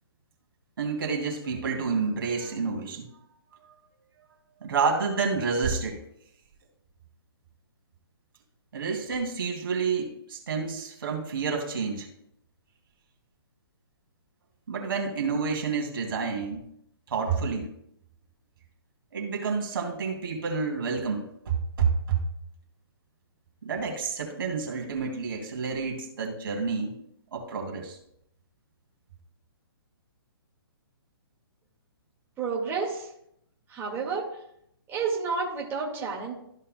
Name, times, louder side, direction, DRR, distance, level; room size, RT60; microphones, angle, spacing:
voice 1, 0.8-3.1 4.6-6.0 8.7-12.1 14.7-16.6 17.1-17.7 19.1-22.2 23.6-27.0 27.3-28.0, right 5 dB, 60° right, 1 dB, 2.5 m, -29 dB
voice 2, 32.4-33.1 33.7-34.3 34.9-36.3, right 5 dB, 15° right, -4 dB, 1.8 m, -30 dB
14.0 x 5.5 x 2.2 m, 0.73 s
figure-of-eight pair, 135°, 13 cm